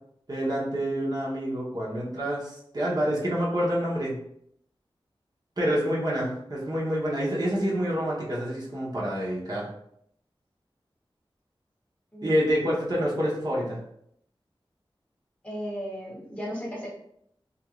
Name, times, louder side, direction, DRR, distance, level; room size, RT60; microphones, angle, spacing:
voice 1, 0.3-4.1 5.6-9.7 12.2-13.8, equal, 45° right, -6 dB, 0.9 m, -27 dB
voice 2, 15.4-16.9, equal, 15° left, -4 dB, 1.1 m, -35 dB
2.5 x 2.4 x 3.0 m, 0.71 s
wide cardioid pair, 55°, 10 cm